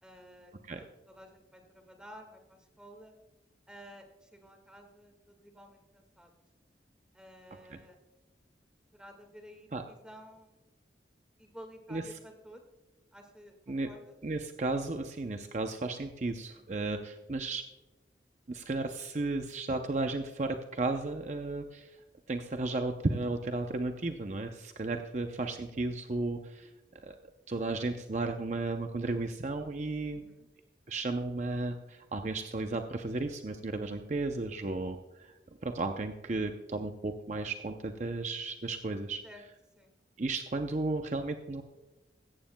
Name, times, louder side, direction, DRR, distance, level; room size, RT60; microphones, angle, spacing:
voice 1, 0.0-3.1 3.7-6.3 7.1-8.0 8.9-10.6 11.4-12.6 13.1-14.2 16.5-16.8 30.1-30.5 39.2-39.4 39.7-39.9, equal, 5° right, 4 dB, 1.7 m, -53 dB
voice 2, 14.2-17.7 18.5-22.0 22.3-26.7 27.0-27.2 27.5-30.2 30.9-35.3 35.6-39.2 40.2-41.6, right 2 dB, 40° right, 5 dB, 0.6 m, -34 dB
16.5 x 14.0 x 2.2 m, 1.1 s
head